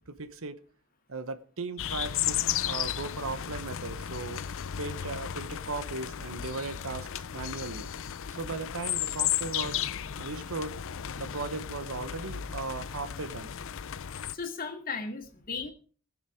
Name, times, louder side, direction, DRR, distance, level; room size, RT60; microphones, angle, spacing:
voice 1, 0.1-0.6 1.1-4.4 4.8-7.9 8.3-9.8 10.2-10.8 11.1-13.5, right 3 dB, 70° right, 12 dB, 1.0 m, -37 dB
sound 1, 1.8-14.4, left 10 dB, 65° left, 0.6 m, -34 dB
voice 2, 14.2-15.7, left 4 dB, 45° left, 5 dB, 2.2 m, -36 dB
20.0 x 7.3 x 5.0 m, 0.41 s
head